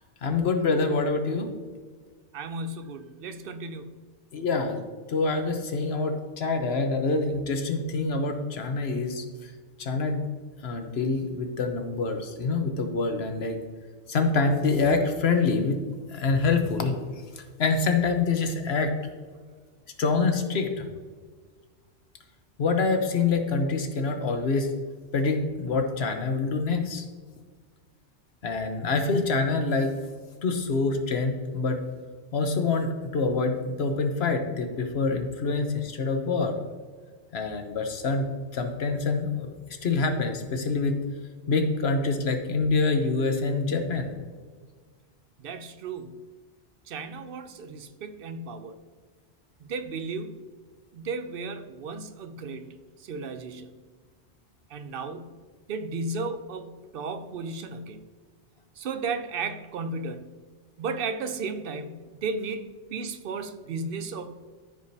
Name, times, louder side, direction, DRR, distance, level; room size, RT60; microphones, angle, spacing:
voice 1, 0.2-1.5 4.3-4.8 5.1-9.5 9.8-10.2 10.6-13.6 14.1-15.8 16.1-17.0 17.4-18.9 20.0-20.9 22.6-24.7 25.1-27.0 28.4-30.0 30.4-31.8 32.3-36.6 37.3-39.5 39.8-40.9 41.5-44.2, left 4 dB, 65° left, 6 dB, 1.2 m, -26 dB
voice 2, 2.3-4.0 45.4-46.2 46.9-48.8 49.6-50.5 50.9-52.7 53.0-53.7 54.7-55.3 55.7-58.0 58.8-60.3 60.8-62.6 62.9-64.5, right 4 dB, 60° right, 10 dB, 0.7 m, -34 dB
14.0 x 4.9 x 2.8 m, 1.5 s
omnidirectional pair, 1.2 m